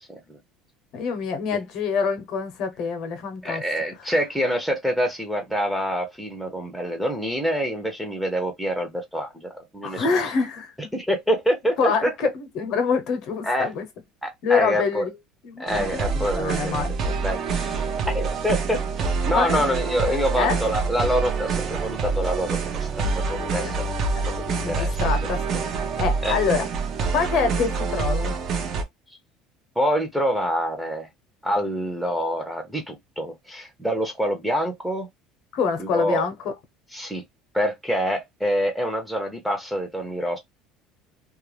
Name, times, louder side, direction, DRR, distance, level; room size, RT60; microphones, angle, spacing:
voice 1, 0.9-3.6 9.8-10.7 11.8-13.9 14.4-15.1 15.4-16.9 19.3-19.7 20.1-20.6 23.6-23.7 24.1-26.7 27.1-28.4 35.5-36.3, left 5 dB, 55° left, 0.8 m, -26 dB
voice 2, 3.4-10.1 10.9-12.1 13.4-13.7 14.2-15.1 15.6-23.7 24.4-25.0 26.2-26.4 29.8-31.1 31.4-35.1 35.8-36.3 36.9-37.2 37.5-40.4, equal, ahead, 0.7 m, -26 dB
sound 1, 15.7-28.8, right 4 dB, 40° right, 0.6 m, -26 dB
2.4 x 2.1 x 3.2 m
cardioid pair, 140°, 0 cm